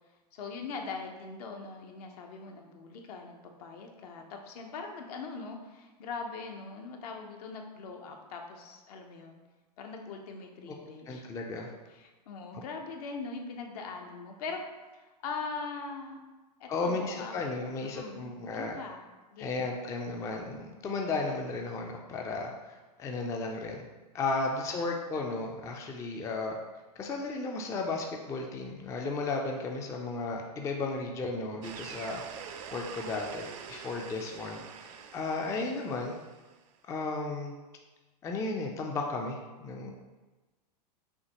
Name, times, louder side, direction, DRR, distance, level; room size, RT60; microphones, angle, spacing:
voice 1, 0.3-9.4 9.8-11.2 11.9-14.6 14.9-16.2 16.6-17.4 17.8-18.2 18.5-19.0 19.3-19.6 24.7-24.9, left 4 dB, 65° left, 3 dB, 0.8 m, -41 dB
voice 2, 11.1-11.7 16.7-18.8 19.4-23.8 24.1-26.6 27.0-36.2 36.8-37.5 38.2-39.9, left 3 dB, 15° left, 1 dB, 0.3 m, -34 dB
sound 1, 31.6-36.6, right 7 dB, 50° right, 0.4 m, -45 dB
5.7 x 2.7 x 2.9 m, 1.2 s
hypercardioid pair, 120°, 21 cm